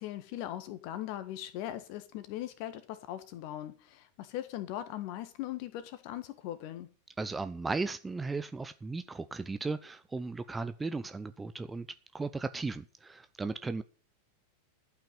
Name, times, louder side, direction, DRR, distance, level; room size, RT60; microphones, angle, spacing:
voice 1, 0.0-6.9, left 13 dB, 45° left, 1.5 m, -40 dB
voice 2, 7.2-11.9 12.1-13.8, right 3 dB, 10° right, 0.7 m, -36 dB
12.0 x 5.8 x 8.4 m
figure-of-eight pair, 90°, 0 cm